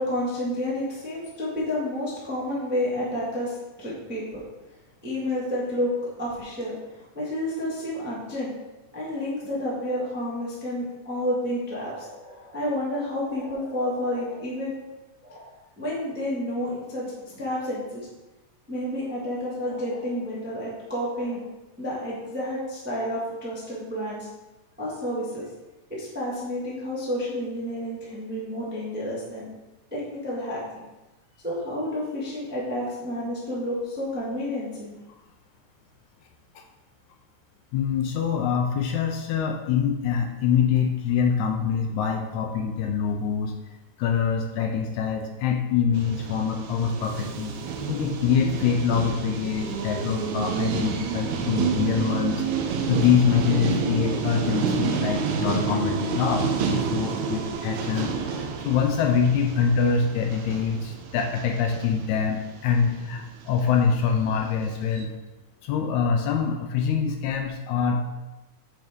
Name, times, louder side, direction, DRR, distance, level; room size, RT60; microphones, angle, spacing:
voice 1, 0.0-4.4 5.0-8.5 8.9-14.7 15.2-18.1 18.7-21.4 21.8-24.3 24.8-25.5 25.9-29.5 29.9-30.8 31.4-34.9, left 1 dB, 10° right, -7 dB, 0.7 m, -30 dB
voice 2, 37.7-43.5 44.0-47.6 47.9-52.5 52.9-65.1 65.6-68.0, left 7 dB, 80° left, 3 dB, 1.9 m, -25 dB
sound 1, 46.0-63.3 63.6-63.8 64.2-64.3 64.5-64.6 64.9-65.0, right 5 dB, 75° right, 1.9 m, -29 dB
7.8 x 4.7 x 3.6 m, 1.1 s
omnidirectional pair, 3.6 m